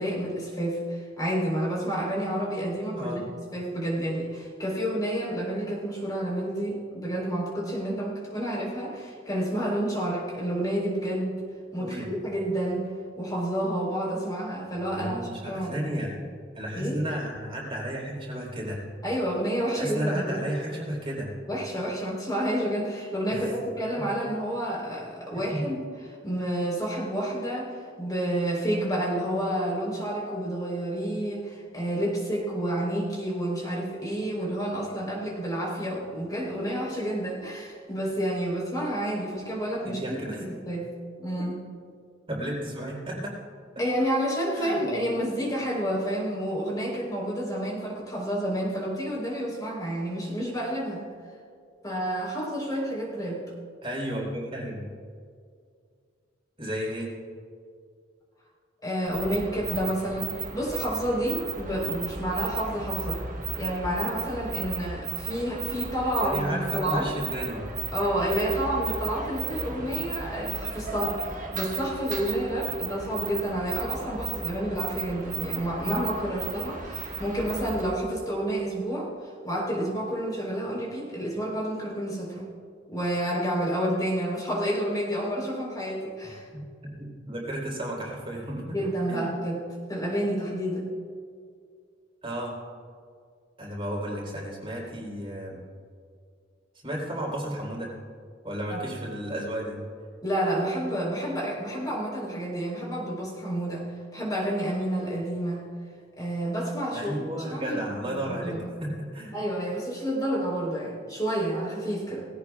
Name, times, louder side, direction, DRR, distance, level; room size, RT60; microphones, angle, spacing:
voice 1, 0.0-3.3 3.5-11.4 11.7-12.9 13.2-16.0 16.7-17.0 19.0-20.4 21.5-25.8 26.2-40.9 41.2-41.6 43.8-51.0 51.8-53.4 58.8-63.2 63.5-67.1 67.9-79.1 79.4-82.5 82.9-86.5 88.7-89.6 89.9-90.9 98.7-98.8 100.2-105.6 106.2-108.7 109.3-112.3, right 1 dB, 20° left, -3 dB, 3.8 m, -29 dB
voice 2, 14.9-16.2 16.5-18.8 19.7-21.3 23.3-23.6 24.0-24.1 25.5-25.6 39.8-40.4 42.3-43.4 44.5-44.8 53.8-54.9 56.6-57.1 66.2-67.7 86.5-88.8 89.1-89.3 92.2-92.5 93.6-95.6 96.8-97.9 98.4-99.8 106.9-109.3, equal, 30° right, -3 dB, 3.8 m, -33 dB
sound 1, 59.1-78.0, right 5 dB, 45° right, 1.4 m, -35 dB
20.5 x 17.0 x 2.4 m, 2.2 s
head